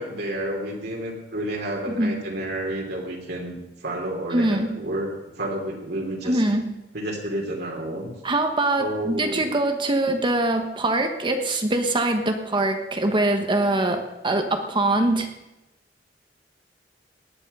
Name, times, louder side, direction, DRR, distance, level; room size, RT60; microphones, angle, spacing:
voice 1, 0.0-5.1 5.4-6.4 6.9-8.1 8.8-9.5, right 1 dB, 60° right, 0 dB, 2.8 m, -30 dB
voice 2, 4.3-4.7 6.2-6.6 8.2-15.3, right 2 dB, 30° right, 5 dB, 1.1 m, -23 dB
18.0 x 10.5 x 5.4 m, 0.98 s
head